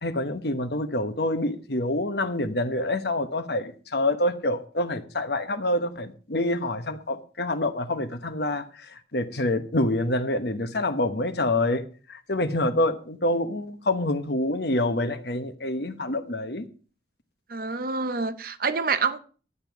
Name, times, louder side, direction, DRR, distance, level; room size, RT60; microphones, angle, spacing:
voice 1, 0.0-11.8 12.1-16.7, left 1 dB, 60° left, 1.1 m, -27 dB
voice 2, 17.5-19.2, right 4 dB, 50° right, 0.7 m, -27 dB
11.5 x 9.2 x 4.8 m
head